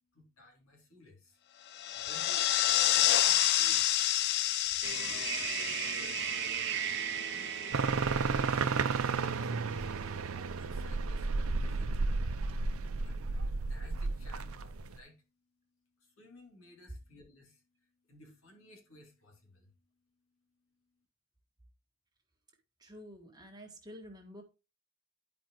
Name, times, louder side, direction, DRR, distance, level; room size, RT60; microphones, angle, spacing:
voice 1, 0.1-1.7 1.9-3.9 4.8-6.7 7.0-9.9 10.2-12.1 13.0-15.2 16.0-17.6 18.1-19.7, left 2 dB, 80° left, 2.7 m, -58 dB
sound 1, 1.7-7.6, left 13 dB, 50° left, 0.4 m, -29 dB
sound 2, 4.8-10.6, right 9 dB, 55° right, 0.7 m, -38 dB
sound 3, 7.7-15.0, right 4 dB, 85° right, 0.6 m, -32 dB
voice 2, 22.8-24.4, equal, 20° right, 1.8 m, -49 dB
11.0 x 5.2 x 3.0 m
head